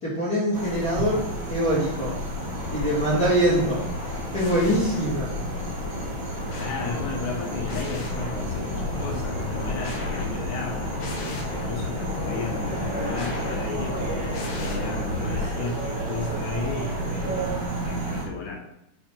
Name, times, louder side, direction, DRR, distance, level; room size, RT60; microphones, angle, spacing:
voice 1, 0.0-2.2 2.7-5.4, equal, 30° left, -9 dB, 2.3 m, -24 dB
sound 1, 0.5-18.3, right 1 dB, 70° right, 2.8 m, -33 dB
sound 2, 0.8-17.9, right 1 dB, 25° right, 2.8 m, -37 dB
sound 3, 2.3-15.5, left 2 dB, 60° left, 1.2 m, -34 dB
voice 2, 6.5-17.6 17.8-18.6, left 4 dB, 80° left, -1 dB, 2.7 m, -34 dB
6.7 x 4.9 x 4.4 m, 0.82 s
omnidirectional pair, 3.5 m